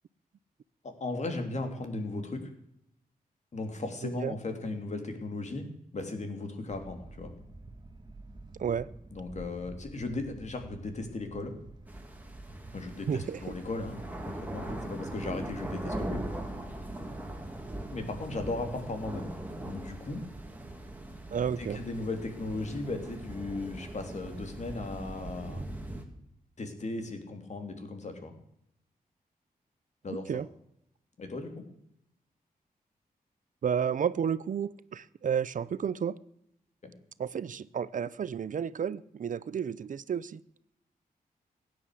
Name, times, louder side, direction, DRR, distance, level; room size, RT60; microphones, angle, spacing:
voice 1, 0.8-2.5 3.5-5.7 5.9-7.3 9.1-11.6 12.7-16.2 17.9-20.2 21.6-25.7 26.6-28.3 30.0-30.3 31.2-31.6 36.8-36.9, left 2 dB, 50° left, 5 dB, 3.1 m, -37 dB
sound 1, 6.7-25.1, right 2 dB, 30° right, 1.8 m, -51 dB
sound 2, 11.9-26.0, right 1 dB, 10° right, 2.7 m, -40 dB
voice 2, 13.1-13.5 21.3-21.8 30.1-30.5 33.6-36.2 37.2-40.4, right 7 dB, 60° right, 18 dB, 0.6 m, -31 dB
16.5 x 9.8 x 8.3 m, 0.79 s
wide cardioid pair, 110°, 15 cm